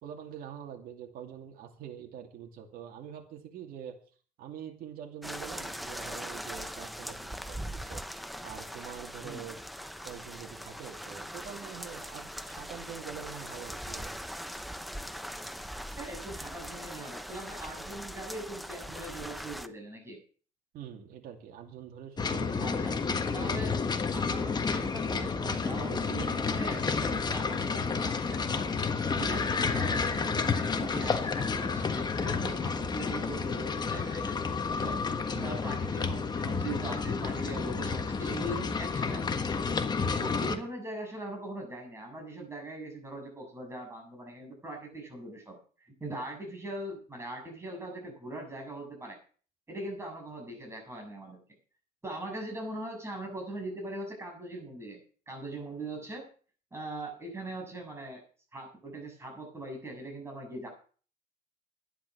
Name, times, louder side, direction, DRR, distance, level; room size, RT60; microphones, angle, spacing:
voice 1, 0.0-4.0 4.4-8.0 8.4-9.6 10.0-14.1 20.7-23.1 35.3-35.6 40.2-40.3, right 9 dB, 70° right, 2 dB, 2.6 m, -45 dB
sound 1, 5.2-19.7, equal, ahead, 0.8 m, -41 dB
voice 2, 15.9-20.2 22.6-23.0 23.3-23.8 24.1-28.7 29.1-35.0 35.4-39.7 40.2-49.2 49.7-51.4 52.0-55.0 55.3-56.3 56.7-58.2 58.5-60.7, right 1 dB, 15° right, 1 dB, 7.0 m, -41 dB
sound 2, 22.2-40.6, left 5 dB, 25° left, 1.4 m, -30 dB
11.5 x 10.5 x 6.2 m, 0.42 s
cardioid pair, 120°, 16 cm